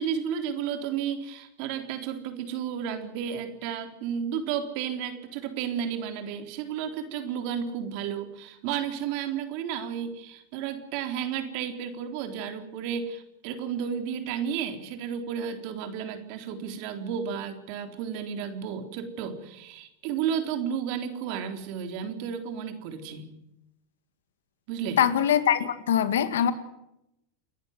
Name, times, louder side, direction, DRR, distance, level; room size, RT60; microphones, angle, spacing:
voice 1, 0.0-23.3 24.7-25.0, right 8 dB, 60° right, 3.8 m, -32 dB
voice 2, 25.0-26.5, left 9 dB, 80° left, 2.0 m, -23 dB
30.0 x 11.0 x 9.5 m
hypercardioid pair, 105°, 0 cm